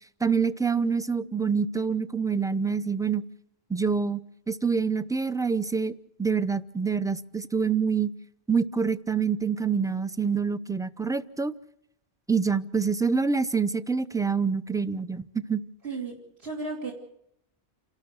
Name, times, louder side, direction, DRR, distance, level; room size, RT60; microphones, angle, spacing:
voice 1, 0.2-3.2 3.7-8.1 8.5-11.5 12.3-15.6, right 5 dB, 5° right, 14 dB, 0.4 m, -26 dB
voice 2, 15.8-16.9, right 3 dB, 65° right, -1 dB, 3.0 m, -34 dB
28.5 x 12.5 x 8.0 m, 0.77 s
omnidirectional pair, 1.1 m